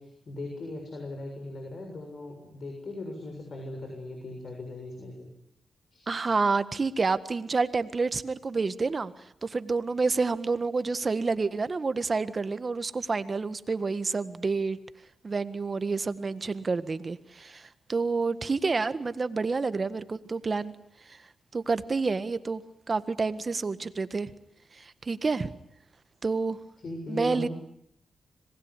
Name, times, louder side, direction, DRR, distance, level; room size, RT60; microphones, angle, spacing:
voice 1, 0.0-5.3 5.9-6.0 26.8-27.5, left 2 dB, 60° left, 2 dB, 7.0 m, -39 dB
voice 2, 6.1-9.1 9.4-14.8 15.2-20.7 21.1-21.2 21.5-22.6 22.9-24.3 24.7-25.5 26.2-26.6 27.1-27.5, right 4 dB, 45° right, 13 dB, 1.6 m, -28 dB
26.0 x 20.0 x 9.9 m, 0.74 s
cardioid pair, 60°, 0 cm